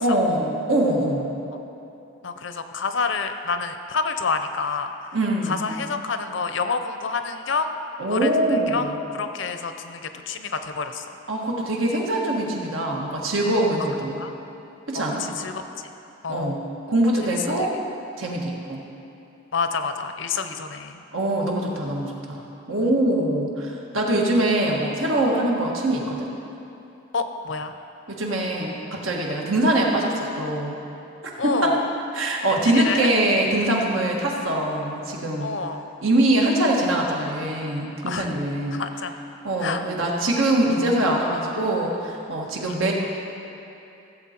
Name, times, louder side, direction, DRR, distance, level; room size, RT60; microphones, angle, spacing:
voice 1, 0.0-1.3 5.1-5.8 8.0-9.0 11.3-14.2 14.9-15.2 16.3-16.6 16.9-17.7 18.2-18.8 21.1-22.4 22.7-26.3 28.1-30.8 31.4-31.8 32.1-35.5 36.0-38.8 39.4-42.9, right 1 dB, 85° right, -1 dB, 1.6 m, -23 dB
voice 2, 2.2-4.9 5.5-7.7 8.1-8.9 9.1-11.0 14.0-14.3 14.9-15.5 16.2-16.5 17.6-17.7 19.5-21.0 27.1-27.7 31.4-31.9 32.7-33.1 35.4-35.8 38.1-38.3 38.7-39.1 39.6-39.8 42.6-42.7, left 4 dB, 70° left, 8 dB, 0.6 m, -28 dB
15.0 x 7.9 x 4.4 m, 2.8 s
head